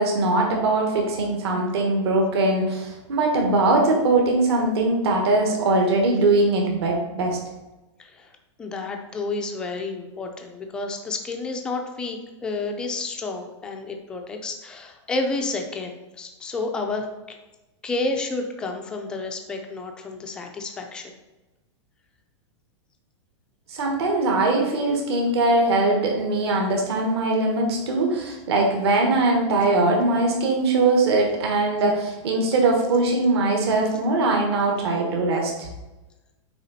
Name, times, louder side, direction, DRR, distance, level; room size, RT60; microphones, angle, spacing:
voice 1, 0.0-7.4 23.7-35.7, right 2 dB, 60° right, 1 dB, 1.6 m, -21 dB
voice 2, 8.0-8.3 8.6-17.4 17.8-21.2, left 3 dB, 5° left, 3 dB, 0.3 m, -30 dB
9.0 x 3.7 x 4.0 m, 1.1 s
supercardioid pair, 180°, 16 cm